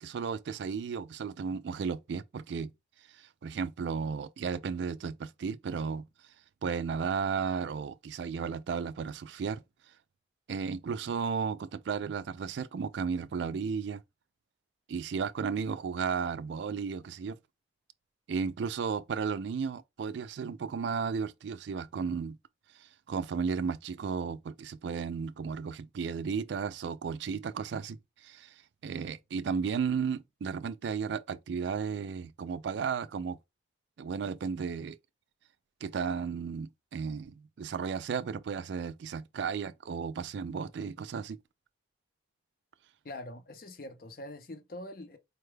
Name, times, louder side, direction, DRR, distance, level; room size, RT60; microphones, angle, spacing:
voice 1, 0.0-2.7 3.1-6.1 6.6-9.6 10.5-14.0 14.9-17.4 18.3-22.4 22.8-28.5 28.8-33.4 34.0-35.0 35.8-41.4, right 6 dB, 65° right, 0.3 m, -34 dB
voice 2, 43.0-45.2, left 1 dB, 50° left, 0.6 m, -44 dB
4.6 x 2.2 x 3.2 m
head